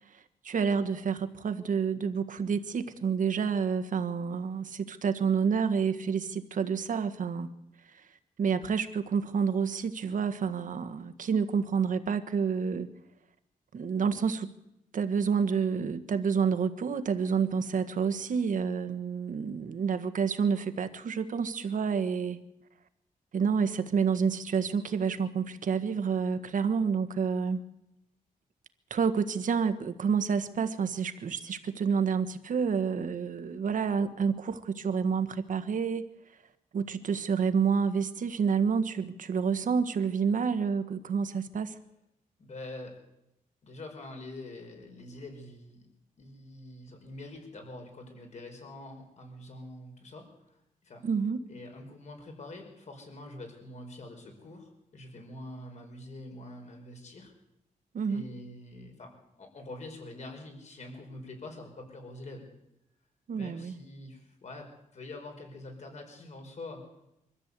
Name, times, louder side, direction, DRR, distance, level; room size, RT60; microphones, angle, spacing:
voice 1, 0.1-7.5 7.9-8.1 8.4-12.9 13.7-14.5 14.9-22.4 23.3-27.6 28.9-36.1 36.7-41.8 51.0-51.4 57.9-58.2 63.3-63.8, right 6 dB, 65° right, 10 dB, 1.5 m, -29 dB
voice 2, 42.4-43.0 43.6-45.9 46.2-51.0 51.5-57.3 58.1-59.1 59.4-62.5 63.3-66.8, left 2 dB, 55° left, 4 dB, 5.2 m, -45 dB
24.0 x 14.0 x 8.4 m, 0.86 s
wide cardioid pair, 140°, 15 cm